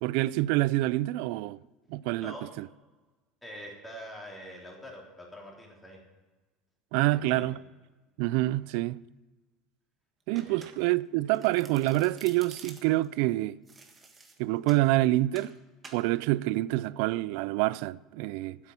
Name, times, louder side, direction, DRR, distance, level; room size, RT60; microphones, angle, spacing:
voice 1, 0.0-1.6 1.9-2.6 6.9-7.6 8.2-9.0 10.3-13.6 14.4-15.5 15.9-18.6, right 17 dB, 75° right, 0.3 m, -27 dB
voice 2, 3.4-6.0 7.0-7.5 10.3-10.7, equal, 5° left, 3.5 m, -45 dB
Domestic sounds home sounds, 10.3-11.0 11.3-13.1 13.7-14.9 15.3-15.5 15.8-16.1, right 4 dB, 20° right, 1.6 m, -50 dB
9.7 x 8.3 x 9.7 m
supercardioid pair, 130°, 0 cm